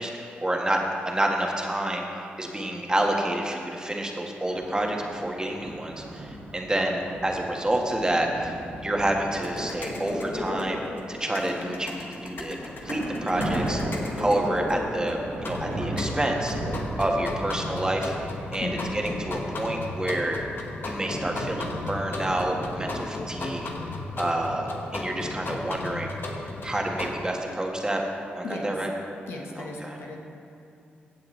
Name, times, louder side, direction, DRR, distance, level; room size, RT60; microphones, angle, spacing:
voice 1, 0.0-10.8 11.1-13.8 14.2-16.6 17.0-18.1 18.5-20.4 20.8-23.7 24.2-26.2 26.6-28.0 28.3-28.9 29.6-30.0, right 1 dB, 20° right, 0 dB, 1.6 m, -28 dB
sound 1, 4.4-11.1 11.6-23.3, right 1 dB, 85° right, 2.0 m, -37 dB
sound 2, 9.3-27.1, left 2 dB, 60° left, 1.2 m, -35 dB
voice 2, 18.6-18.9 28.4-28.7 29.3-30.2, left 2 dB, 75° left, 0 dB, 1.3 m, -35 dB
16.5 x 7.3 x 3.3 m, 2.6 s
supercardioid pair, 50°, 4 cm